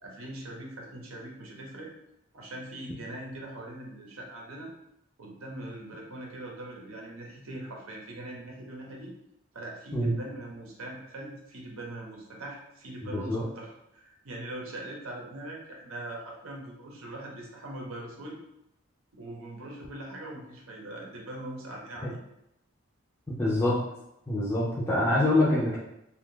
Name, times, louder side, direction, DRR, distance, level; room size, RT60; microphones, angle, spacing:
voice 1, 0.0-1.9 2.3-4.7 5.2-9.1 9.5-18.4 19.1-22.2, right 1 dB, 85° right, -1 dB, 0.7 m, -41 dB
voice 2, 13.1-13.4 22.0-22.1 23.3-23.8 24.3-25.8, left 1 dB, 15° left, -7 dB, 0.4 m, -25 dB
2.7 x 2.3 x 3.7 m, 0.82 s
head